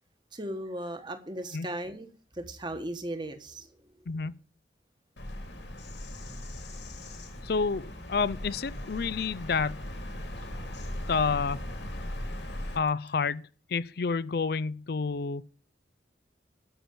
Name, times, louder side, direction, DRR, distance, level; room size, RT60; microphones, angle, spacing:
voice 1, 0.3-2.1 2.3-3.9, right 1 dB, 25° right, 1.3 m, -37 dB
Bird vocalization bird call bird song, 5.2-12.8, left 1 dB, 75° left, 2.5 m, -38 dB
voice 2, 7.4-9.8 11.1-11.6 12.8-13.4 13.7-15.4, left 5 dB, 55° left, 0.4 m, -29 dB
12.5 x 5.9 x 8.6 m
head